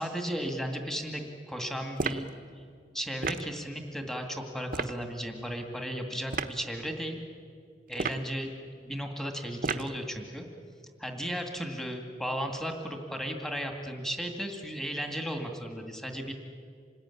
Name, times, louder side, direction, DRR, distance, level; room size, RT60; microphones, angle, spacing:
voice 1, 0.0-2.3 2.9-7.2 7.9-8.5 8.8-10.5 11.0-16.3, equal, 5° left, 3 dB, 2.3 m, -35 dB
sound 1, 2.0-2.3 3.2-3.5 4.7-5.0 6.3-6.6 7.9-8.3 9.6-10.0, right 4 dB, 50° right, 1.1 m, -32 dB
27.0 x 20.0 x 9.9 m, 2.2 s
head